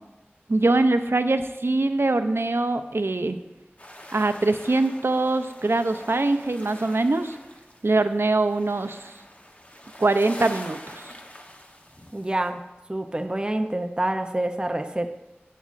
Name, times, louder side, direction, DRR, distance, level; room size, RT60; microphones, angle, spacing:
voice 1, 0.5-3.4 4.1-7.4 7.8-9.1 10.0-11.1, right 2 dB, 70° right, 9 dB, 0.5 m, -23 dB
sound 1, 3.8-12.5, left 1 dB, 35° left, 1.0 m, -44 dB
voice 2, 12.1-12.6 12.9-15.1, right 1 dB, 20° right, 6 dB, 0.6 m, -27 dB
11.0 x 8.3 x 2.5 m, 1.0 s
wide cardioid pair, 45°, 4 cm